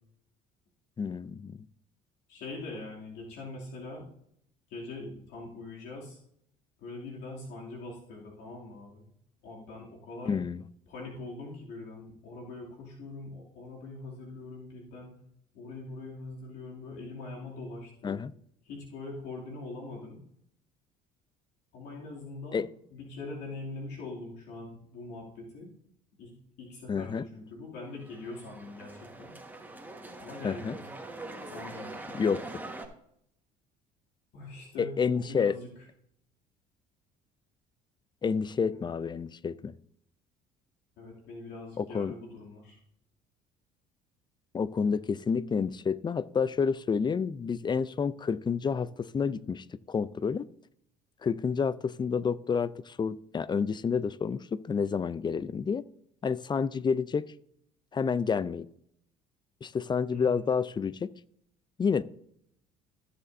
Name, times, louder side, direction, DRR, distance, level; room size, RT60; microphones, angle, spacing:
voice 1, 1.0-1.6 10.3-10.6 18.0-18.3 22.5-22.7 26.9-27.3 30.4-30.8 32.1-32.4 34.8-35.5 38.2-39.7 41.8-42.1 44.5-50.5 51.2-55.8 56.2-57.3 57.9-58.7 59.6-61.1 61.8-62.0, left 6 dB, 25° left, 0.5 m, -29 dB
voice 2, 2.3-4.1 4.7-6.2 6.8-9.1 9.4-10.4 10.9-15.2 15.5-18.2 18.6-20.2 21.7-22.6 22.9-25.7 26.2-26.3 26.6-29.3 30.2-30.9 31.4-32.4 34.3-35.9 38.7-38.8 41.0-42.8 60.1-60.5, left 2 dB, 70° left, 2.7 m, -43 dB
sound 1, 27.9-32.9, right 2 dB, 10° right, 1.5 m, -43 dB
15.5 x 6.9 x 2.7 m
supercardioid pair, 70°, 18 cm